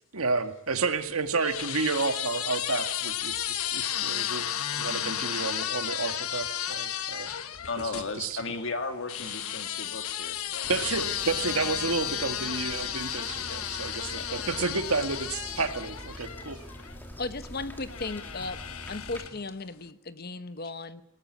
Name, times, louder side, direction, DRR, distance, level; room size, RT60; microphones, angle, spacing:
voice 1, 0.1-7.3 7.8-8.4 10.7-16.6, right 4 dB, 85° right, 8 dB, 1.9 m, -31 dB
sound 1, 0.7-8.1 9.1-17.0 17.9-19.5, left 10 dB, 85° left, 1.2 m, -33 dB
voice 2, 7.7-10.7 11.6-11.8 14.1-14.4, left 3 dB, 60° left, 7 dB, 2.5 m, -36 dB
sound 2, 10.6-19.3, equal, 10° left, 2.4 m, -45 dB
voice 3, 17.2-18.6 18.9-21.0, left 3 dB, 45° left, 13 dB, 1.1 m, -36 dB
19.5 x 18.5 x 9.8 m, 0.82 s
head